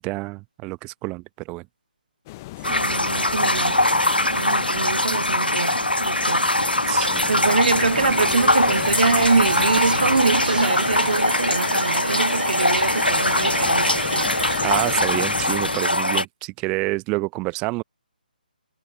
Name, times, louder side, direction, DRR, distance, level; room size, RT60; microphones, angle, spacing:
voice 1, 0.0-1.6 6.9-7.3 14.6-17.8, right 25 dB, 15° right, 0.7 m, -28 dB
sound 1, 2.3-15.8, left 20 dB, 20° left, 0.5 m, -36 dB
sound 2, 2.6-16.2, left 1 dB, 85° left, 1.3 m, -22 dB
voice 2, 2.7-3.9 4.3-6.5 7.3-14.3, right 4 dB, 65° right, 0.6 m, -24 dB
sound 3, 7.9-15.1, right 2 dB, 80° right, 2.9 m, -30 dB
figure-of-eight pair, 140°, 5 cm